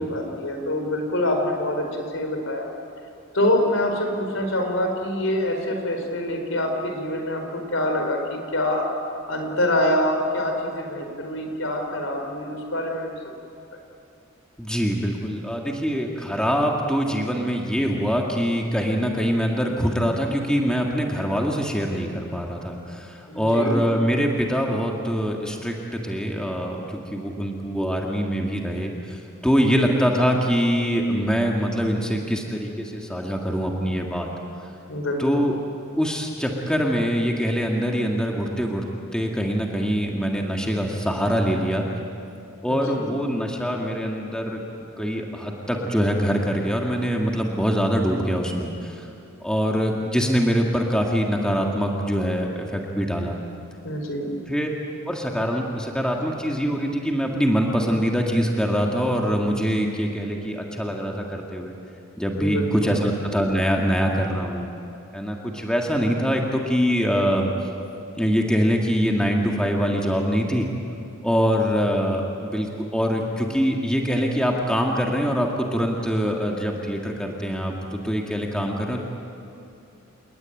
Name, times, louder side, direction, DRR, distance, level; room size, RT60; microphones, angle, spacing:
voice 1, 0.0-2.7 3.3-8.9 9.3-13.3 23.3-23.8 29.6-29.9 34.9-35.5 42.7-43.1 53.8-54.3 62.4-63.0, left 1 dB, 65° left, 4 dB, 4.6 m, -25 dB
voice 2, 14.6-34.3 35.2-35.5 36.0-38.9 39.1-41.9 42.6-44.6 45.0-49.1 49.4-53.4 54.5-54.7 55.1-61.7 62.2-64.7 65.1-67.5 68.1-70.7 71.2-79.0, equal, 5° left, 0 dB, 2.1 m, -24 dB
28.5 x 20.5 x 9.2 m, 2.7 s
head